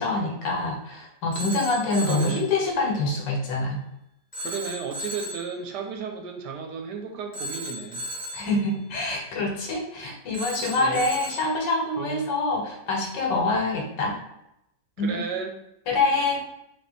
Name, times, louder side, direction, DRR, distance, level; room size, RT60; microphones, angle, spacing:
voice 1, 0.0-3.8 8.3-14.2 15.0-15.2 15.9-16.4, left 2 dB, 80° left, 0 dB, 1.5 m, -25 dB
Telephone, 1.3-2.5 4.3-5.5 7.3-8.5 10.3-11.5, equal, 15° left, 0.8 m, -35 dB
voice 2, 2.0-2.5 4.4-8.0 10.7-11.1 12.0-12.3 15.0-15.5, right 5 dB, 75° right, 3 dB, 1.1 m, -33 dB
3.5 x 2.8 x 3.9 m, 0.81 s
omnidirectional pair, 2.0 m